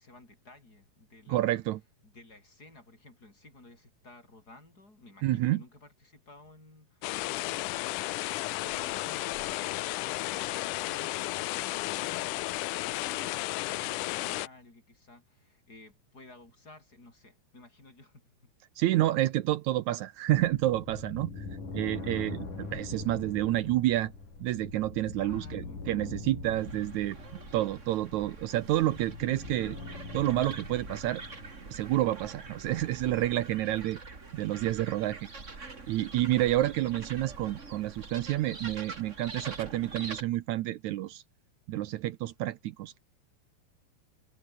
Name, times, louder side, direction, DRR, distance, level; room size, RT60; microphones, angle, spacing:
voice 1, 0.0-1.5 2.0-18.5 25.1-25.9, left 2 dB, 25° left, 7.5 m, -54 dB
voice 2, 1.3-1.8 5.2-5.6 18.8-21.4 21.7-24.1 24.4-27.2 27.5-29.8 30.1-31.2 31.7-34.0 34.3-35.2 35.9-41.2 41.7-43.0, right 15 dB, 80° right, 1.7 m, -29 dB
sound 1, 7.0-14.5, left 19 dB, 80° left, 1.9 m, -33 dB
sound 2, 20.3-31.5, left 4 dB, 60° left, 8.3 m, -43 dB
sound 3, 26.6-40.2, right 4 dB, 25° right, 2.4 m, -45 dB
omnidirectional pair, 4.2 m